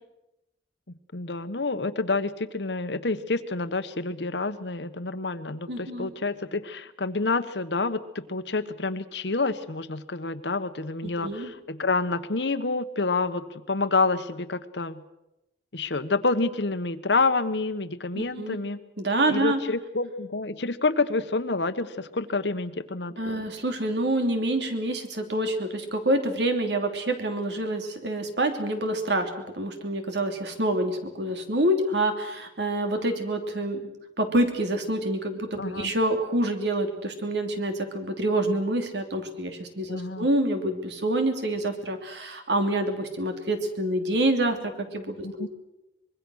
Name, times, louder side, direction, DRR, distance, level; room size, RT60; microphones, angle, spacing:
voice 1, 1.1-15.0 15.7-18.8 19.3-23.4 35.6-35.9 39.9-40.3 45.2-45.5, left 3 dB, 80° left, 12 dB, 1.2 m, -28 dB
voice 2, 5.7-6.1 11.0-11.5 18.1-18.6 19.0-19.6 23.2-33.9 34.2-45.5, right 1 dB, 75° right, 6 dB, 3.1 m, -27 dB
25.0 x 22.0 x 6.4 m, 0.92 s
head